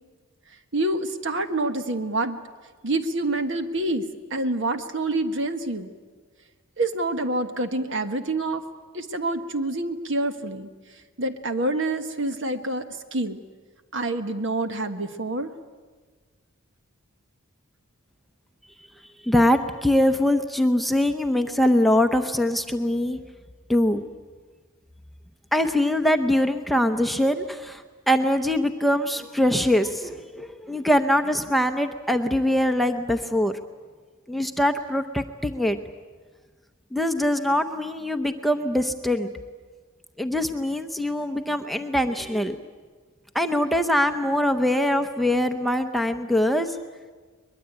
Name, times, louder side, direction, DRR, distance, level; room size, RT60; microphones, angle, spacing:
voice 1, 0.7-2.4 2.8-4.0 4.3-5.9 6.8-8.6 8.9-10.7 11.2-13.4 13.9-15.5, right 2 dB, 60° right, 8 dB, 1.4 m, -27 dB
voice 2, 19.2-23.2 23.7-24.1 25.5-33.5 34.3-35.8 36.9-39.3 40.2-42.6 43.3-46.8, left 1 dB, ahead, 5 dB, 0.7 m, -23 dB
22.5 x 21.5 x 8.7 m, 1.4 s
head